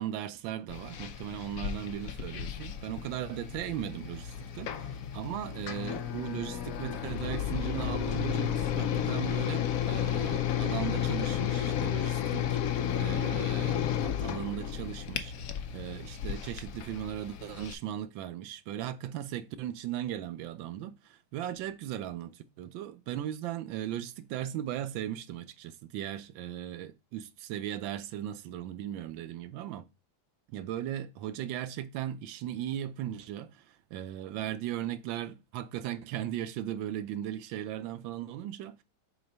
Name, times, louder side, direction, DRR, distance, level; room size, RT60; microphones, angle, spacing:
voice 1, 0.0-15.3 15.7-29.9 30.5-38.8, right 11 dB, 75° right, 1.3 m, -37 dB
sound 1, 0.7-17.7, left 9 dB, 80° left, 0.7 m, -32 dB
4.8 x 4.4 x 5.3 m
omnidirectional pair, 2.3 m